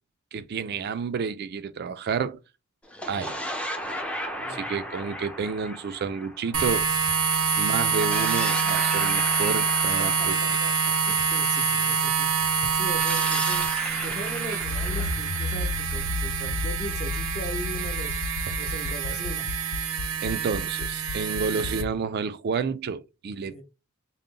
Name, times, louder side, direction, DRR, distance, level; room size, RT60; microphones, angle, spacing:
voice 1, 0.3-2.4 3.1-3.4 4.4-6.9 7.6-10.4 20.2-23.6, right 5 dB, 50° right, 0.4 m, -30 dB
sound 1, 2.8-7.3 7.8-11.8 12.8-16.6, equal, 5° left, 0.5 m, -36 dB
voice 2, 4.4-4.8 10.0-10.7 11.0-13.7 14.0-18.2 18.6-19.5 21.6-22.0 23.4-23.6, equal, 30° left, 0.9 m, -39 dB
sound 2, 6.5-21.8, right 6 dB, 90° right, 0.7 m, -26 dB
Accelerating revving vroom, 14.6-21.9, left 4 dB, 80° left, 0.3 m, -33 dB
3.8 x 2.1 x 3.7 m
head